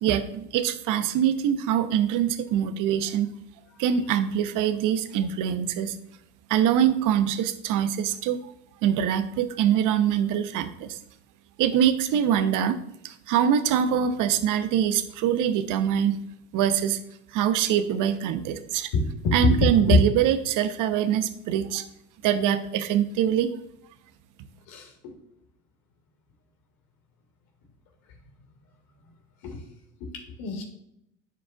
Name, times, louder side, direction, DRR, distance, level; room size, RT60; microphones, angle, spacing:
voice 1, 0.0-3.3 3.8-6.0 6.5-8.5 8.8-11.0 11.6-12.8 13.0-16.2 16.5-17.0 17.3-18.9 19.3-21.9 22.2-23.5, right 9 dB, 50° right, 10 dB, 0.8 m, -24 dB
voice 2, 18.9-20.0 24.7-24.9 29.4-29.6 30.0-30.1 30.4-30.6, left 3 dB, 60° left, 2 dB, 1.9 m, -23 dB
13.0 x 4.8 x 2.3 m, 0.79 s
hypercardioid pair, 70°, 41 cm